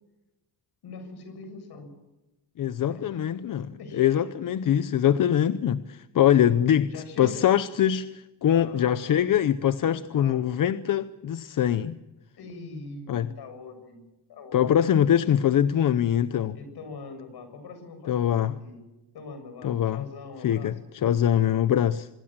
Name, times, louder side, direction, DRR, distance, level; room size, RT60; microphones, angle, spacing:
voice 1, 0.8-1.9 2.9-3.1 3.8-4.2 6.9-7.5 8.5-9.3 9.8-10.4 12.4-15.3 16.5-18.8 19.1-20.7, left 3 dB, 65° left, 8 dB, 7.3 m, -43 dB
voice 2, 2.6-12.0 13.1-13.3 14.5-16.6 18.1-18.5 19.6-20.0 20.4-22.1, left 10 dB, 50° left, 13 dB, 0.8 m, -23 dB
25.5 x 21.0 x 7.5 m, 1.0 s
cardioid pair, 165°, 42 cm